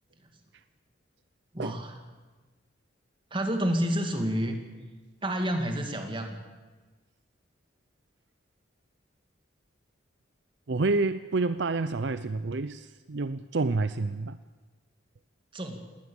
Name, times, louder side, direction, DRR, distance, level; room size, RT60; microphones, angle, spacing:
voice 1, 1.5-2.0 3.3-4.6 5.2-6.4 15.5-15.8, equal, 25° right, 4 dB, 2.4 m, -29 dB
voice 2, 10.7-14.4, right 3 dB, 60° right, 13 dB, 0.6 m, -28 dB
19.5 x 19.0 x 7.2 m, 1.3 s
head